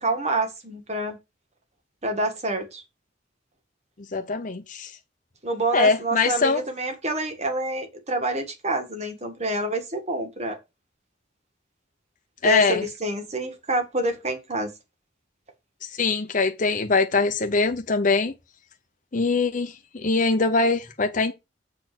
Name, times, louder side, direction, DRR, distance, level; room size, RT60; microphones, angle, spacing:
voice 1, 0.0-1.2 2.0-2.8 5.4-10.6 12.4-14.7, right 1 dB, 35° right, 1.7 m, -27 dB
voice 2, 4.1-4.9 5.7-6.6 12.4-12.8 16.0-18.3 19.1-21.3, left 4 dB, 45° left, 0.8 m, -22 dB
7.6 x 4.3 x 5.9 m
head